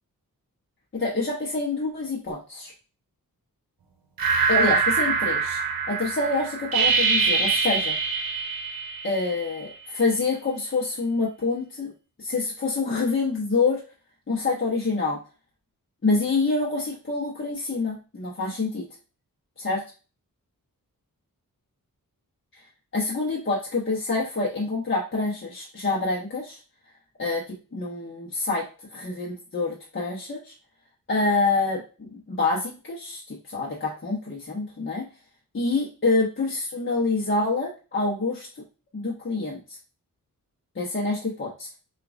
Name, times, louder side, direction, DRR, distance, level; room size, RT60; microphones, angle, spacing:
voice 1, 0.9-2.7 4.5-5.6 5.9-7.9 9.0-11.9 12.2-13.8 14.3-15.2 16.0-18.8 19.6-19.8 22.9-26.6 27.2-28.6 28.9-30.5 31.1-35.0 35.5-38.5 38.9-39.6 40.7-41.7, left 3 dB, 35° left, -5 dB, 1.0 m, -26 dB
sound 1, 4.2-9.6, right 5 dB, 80° right, 0.8 m, -24 dB
6.6 x 2.5 x 2.5 m, 0.34 s
wide cardioid pair, 125°, 35 cm